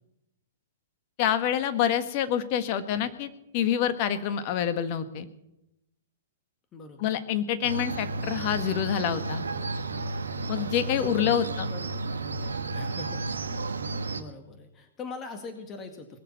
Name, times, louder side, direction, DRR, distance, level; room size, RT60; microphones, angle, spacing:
voice 1, 1.2-5.3 7.0-9.4 10.5-11.6, left 9 dB, 45° left, 10 dB, 1.5 m, -27 dB
voice 2, 6.7-7.1 10.5-11.9 12.4-13.5 14.1-16.2, left 3 dB, 25° left, 6 dB, 2.0 m, -42 dB
sound 1, 7.6-14.2, right 3 dB, 85° right, 1.2 m, -32 dB
20.5 x 6.9 x 8.8 m, 0.88 s
hypercardioid pair, 115°, 0 cm